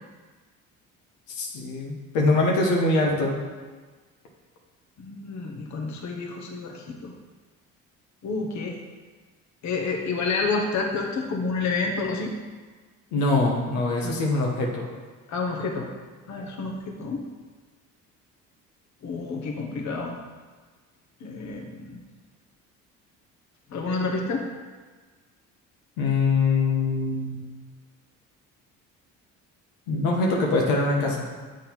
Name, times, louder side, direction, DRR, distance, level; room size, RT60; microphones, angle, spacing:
voice 1, 1.4-3.3 13.1-14.9 26.0-27.5 29.9-31.2, left 3 dB, 80° left, -1 dB, 1.1 m, -23 dB
voice 2, 5.0-7.1 8.2-8.8 9.6-12.3 14.0-14.2 15.3-15.9 16.3-17.3 19.0-20.2 21.2-22.0 23.7-24.5, left 4 dB, 55° left, 1 dB, 1.1 m, -29 dB
7.4 x 3.8 x 4.4 m, 1.4 s
supercardioid pair, 65°, 35 cm